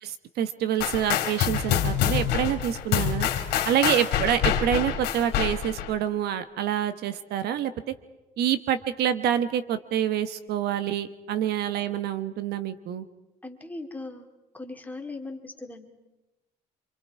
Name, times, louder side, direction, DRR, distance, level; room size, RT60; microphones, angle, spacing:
voice 1, 0.0-3.3 3.6-7.7 8.4-13.0, right 10 dB, 75° right, 12 dB, 1.1 m, -27 dB
sound 1, 0.8-5.9, left 9 dB, 85° left, 2.5 m, -26 dB
voice 2, 13.4-14.3 14.5-15.9, left 2 dB, 10° left, 3 dB, 2.3 m, -39 dB
27.0 x 24.5 x 4.7 m, 1.1 s
cardioid pair, 110°, 17 cm